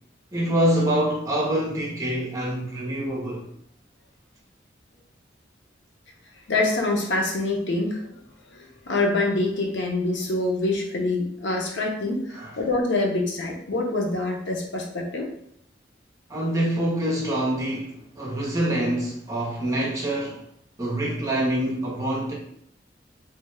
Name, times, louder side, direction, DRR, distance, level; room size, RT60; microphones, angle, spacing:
voice 1, 0.3-3.4 12.3-12.5 16.3-20.4 20.8-22.3, right 1 dB, 20° right, -3 dB, 0.8 m, -25 dB
voice 2, 6.5-15.3, left 2 dB, 85° left, 0 dB, 0.7 m, -26 dB
3.3 x 2.3 x 3.3 m, 0.71 s
head